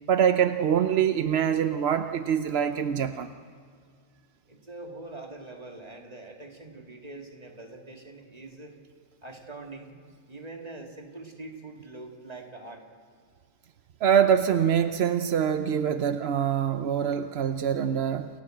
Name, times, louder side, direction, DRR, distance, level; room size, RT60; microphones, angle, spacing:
voice 1, 0.1-3.3 14.0-18.3, right 8 dB, 85° right, 9 dB, 1.0 m, -24 dB
voice 2, 4.5-8.7 9.2-10.0 10.3-12.9, right 2 dB, 40° right, 1 dB, 2.4 m, -43 dB
28.5 x 14.5 x 7.8 m, 2.1 s
omnidirectional pair, 1.0 m